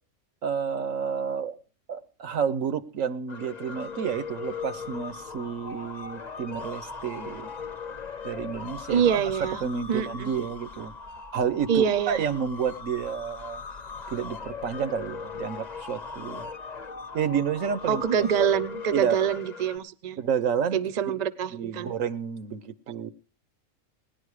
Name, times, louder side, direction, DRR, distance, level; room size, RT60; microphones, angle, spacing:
voice 1, 0.4-1.6 1.9-7.5 8.2-10.9 11.3-13.6 14.1-16.5 17.1-18.0 18.9-19.2 20.2-20.8 21.1-21.2 21.5-23.1, right 7 dB, 85° right, 13 dB, 1.3 m, -30 dB
sound 1, 3.3-19.8, left 5 dB, 35° left, 0.9 m, -39 dB
voice 2, 8.9-9.6 9.9-10.4 11.7-12.2 17.9-20.2 20.7-21.9, right 8 dB, 40° right, 15 dB, 0.7 m, -25 dB
18.0 x 10.5 x 4.9 m, 0.40 s
omnidirectional pair, 1.3 m